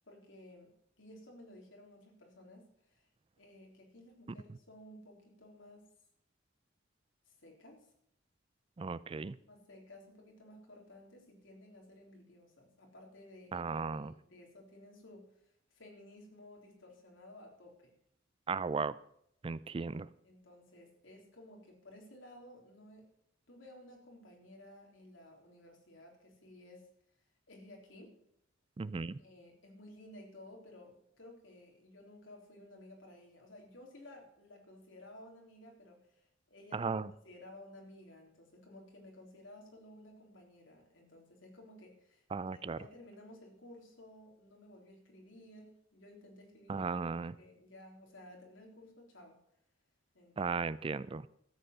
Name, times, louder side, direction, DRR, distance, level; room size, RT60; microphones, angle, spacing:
voice 1, 0.1-3.0 3.4-5.9 7.3-7.9 9.5-13.6 13.9-15.4 15.7-17.9 20.2-23.1 23.5-26.8 27.5-28.2 29.2-36.9 37.2-46.9 47.4-49.4 50.1-50.6, left 1 dB, 80° left, 1 dB, 3.7 m, -55 dB
voice 2, 8.8-9.4 13.5-14.1 18.5-19.0 19.4-20.1 28.8-29.2 36.7-37.1 42.3-42.8 46.7-47.4 50.4-51.3, right 4 dB, 30° right, 18 dB, 0.4 m, -36 dB
13.5 x 8.1 x 6.8 m, 0.73 s
head